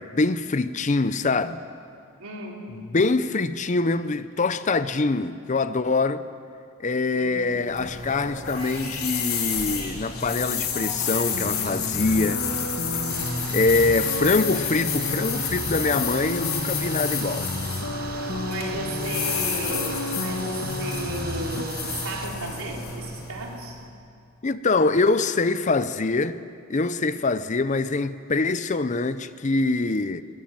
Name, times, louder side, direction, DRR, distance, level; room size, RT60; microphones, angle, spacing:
voice 1, 0.0-1.6 2.7-6.2 6.8-12.4 13.5-17.5 24.4-26.4 26.7-30.2, left 3 dB, 35° left, 0.6 m, -24 dB
voice 2, 2.2-2.7 7.1-7.6 18.4-23.8, right 2 dB, 85° right, 3.6 m, -34 dB
sound 1, 7.5-23.7, left 6 dB, 85° left, 3.6 m, -30 dB
sound 2, 11.3-21.6, left 2 dB, 70° left, 1.4 m, -32 dB
sound 3, 13.1-22.3, right 6 dB, 45° right, 1.2 m, -39 dB
22.0 x 18.0 x 7.6 m
head